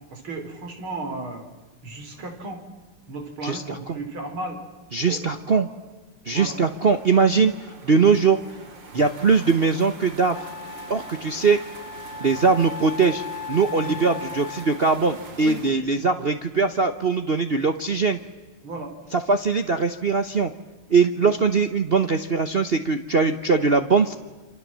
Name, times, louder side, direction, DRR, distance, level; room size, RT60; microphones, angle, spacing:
voice 1, 0.0-1.4 1.8-2.6 3.1-4.6 5.1-5.6 6.3-6.6 8.0-8.2 8.9-9.0 12.3-12.5 13.8-14.0 15.4-15.8 18.6-18.9 21.2-21.3, right 2 dB, 80° right, 5 dB, 4.6 m, -35 dB
voice 2, 3.4-3.8 4.9-5.7 6.3-7.5 7.8-8.4 8.9-10.4 10.9-11.6 12.2-13.2 13.5-18.2 19.1-20.5 20.9-24.1, right 4 dB, 40° right, 8 dB, 0.8 m, -21 dB
sound 1, 6.3-15.7, right 3 dB, 65° right, 3.3 m, -43 dB
Wind instrument woodwind instrument, 10.3-15.0, left 5 dB, 60° left, 2.5 m, -37 dB
28.0 x 26.5 x 7.5 m, 1.2 s
omnidirectional pair, 2.3 m